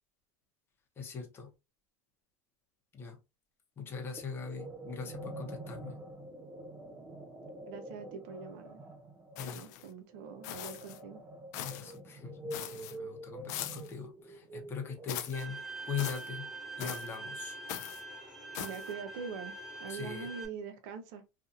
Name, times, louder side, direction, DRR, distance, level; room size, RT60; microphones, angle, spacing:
voice 1, 1.0-1.5 2.9-3.2 3.8-6.0 9.4-9.6 11.5-15.6 15.9-16.5 16.8-17.6 19.9-20.3, left 6 dB, 25° left, 0.8 m, -41 dB
sound 1, 4.2-15.5, right 1 dB, 20° right, 0.4 m, -46 dB
voice 2, 7.7-8.8 9.5-11.2 18.6-21.2, right 6 dB, 60° right, 0.7 m, -43 dB
sound 2, 9.4-9.9 10.4-11.0 11.5-12.0 12.5-13.0 13.5-13.9 15.1-15.5 16.0-16.3 16.8-17.2 17.7-18.0 18.5-18.9, left 12 dB, 70° left, 0.4 m, -41 dB
Bowed string instrument, 15.3-20.5, right 3 dB, 5° right, 0.8 m, -44 dB
2.7 x 2.5 x 2.5 m
supercardioid pair, 135°, 9 cm